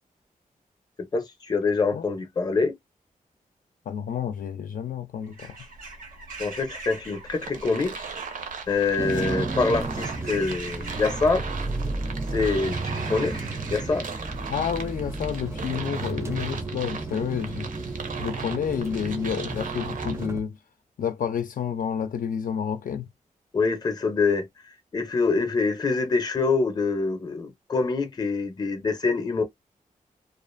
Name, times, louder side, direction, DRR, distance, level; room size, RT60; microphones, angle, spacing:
voice 1, 1.1-2.8 6.4-8.0 8.7-11.5 12.3-13.4 13.7-14.1 23.5-24.5 24.9-29.4, left 4 dB, 30° left, 0.6 m, -25 dB
voice 2, 3.9-5.5 14.5-17.7 18.2-20.6 21.0-23.0, left 8 dB, 75° left, 0.5 m, -30 dB
Bird vocalization bird call bird song / Crow, 5.2-15.1, right 3 dB, 90° right, 1.1 m, -43 dB
sound 1, 7.3-20.3, right 5 dB, 70° right, 0.6 m, -38 dB
sound 2, 9.0-20.4, right 3 dB, 20° right, 0.4 m, -32 dB
2.4 x 2.4 x 2.5 m
wide cardioid pair, 165°, 14 cm